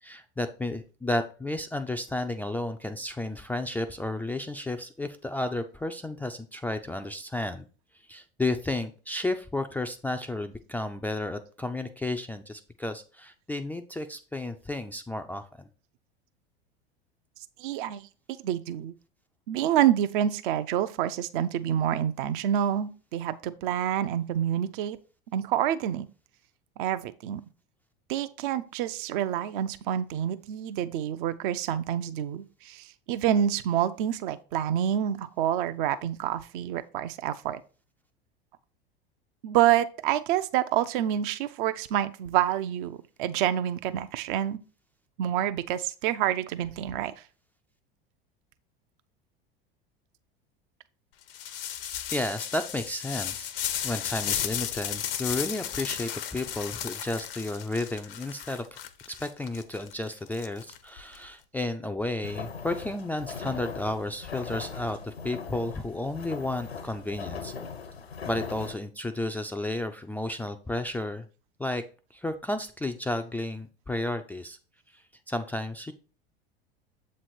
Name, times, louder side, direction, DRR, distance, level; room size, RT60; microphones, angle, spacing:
voice 1, 0.0-7.7 8.1-15.7 52.1-53.5 53.8-58.8 59.2-67.5 68.3-71.3 71.6-71.8 72.1-74.6 75.3-75.9, left 2 dB, 5° left, 6 dB, 0.3 m, -32 dB
voice 2, 17.6-18.1 18.4-18.9 19.5-25.0 25.3-26.1 26.8-27.4 28.1-37.6 39.4-44.6 45.2-47.1, right 11 dB, 55° right, 13 dB, 0.5 m, -27 dB
sound 1, 51.3-61.2, left 10 dB, 70° left, 0.7 m, -34 dB
sound 2, 62.2-68.7, left 5 dB, 90° left, 1.2 m, -39 dB
7.4 x 3.2 x 4.2 m, 0.37 s
figure-of-eight pair, 80°, 30 cm